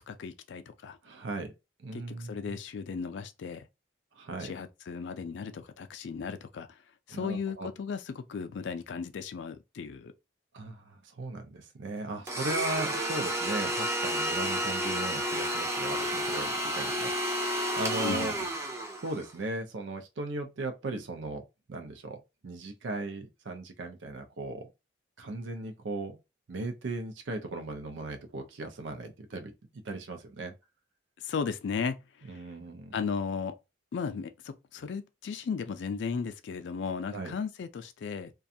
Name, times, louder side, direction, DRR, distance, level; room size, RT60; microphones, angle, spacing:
voice 1, 0.0-1.0 1.9-3.7 4.4-6.7 7.1-10.1 18.0-18.5 31.2-32.0 32.3-32.4 32.9-33.5 33.9-38.3, left 5 dB, 65° left, 0.3 m, -35 dB
voice 2, 1.0-1.5 1.8-2.6 4.2-4.5 7.1-7.7 10.5-18.3 19.0-21.4 21.7-24.7 25.2-26.2 26.5-30.5 32.3-32.9 37.1-37.3, right 2 dB, 70° right, 0.5 m, -37 dB
Domestic sounds home sounds, 12.3-19.3, equal, 15° right, 0.4 m, -31 dB
2.4 x 2.3 x 2.6 m
head